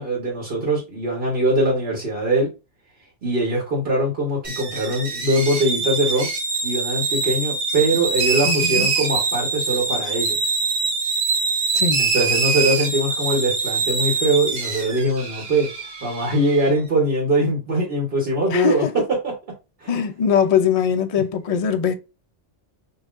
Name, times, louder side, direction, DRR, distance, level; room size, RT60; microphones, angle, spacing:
voice 1, 0.0-2.5 3.2-6.3 6.6-10.4 12.0-15.7 16.0-19.0 19.8-20.0, right 1 dB, 50° right, 1.4 m, -22 dB
sound 1, 4.4-16.7, right 4 dB, 90° right, 1.4 m, -24 dB
voice 2, 8.4-8.9 11.7-12.0 18.5-18.9 19.9-21.9, left 7 dB, 60° left, 0.4 m, -21 dB
5.5 x 2.7 x 2.5 m
omnidirectional pair, 1.3 m